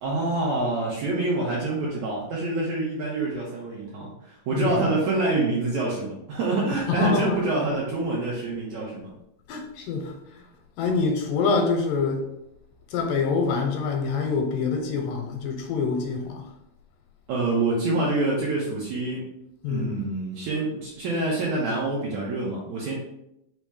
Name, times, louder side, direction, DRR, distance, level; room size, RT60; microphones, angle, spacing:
voice 1, 0.0-9.1 17.3-19.2 19.7-22.9, right 2 dB, 75° right, 1.7 m, -26 dB
voice 2, 4.5-4.8 6.7-7.4 9.5-10.4 10.8-12.2 12.9-16.4 19.6-20.0, left 4 dB, 80° left, 2.1 m, -26 dB
5.4 x 2.1 x 4.6 m
omnidirectional pair, 4.1 m